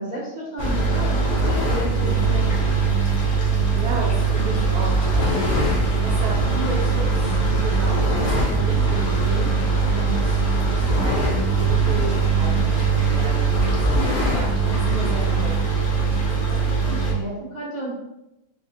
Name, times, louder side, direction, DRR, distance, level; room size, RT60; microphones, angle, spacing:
voice 1, 0.0-2.6 16.5-17.9, right 1 dB, 65° right, -8 dB, 0.4 m, -32 dB
sound 1, 0.6-17.1, right 4 dB, 55° left, 0.7 m, -21 dB
voice 2, 3.7-15.8, right 3 dB, 80° right, -4 dB, 1.4 m, -33 dB
5.9 x 2.1 x 2.8 m, 0.89 s
omnidirectional pair, 2.3 m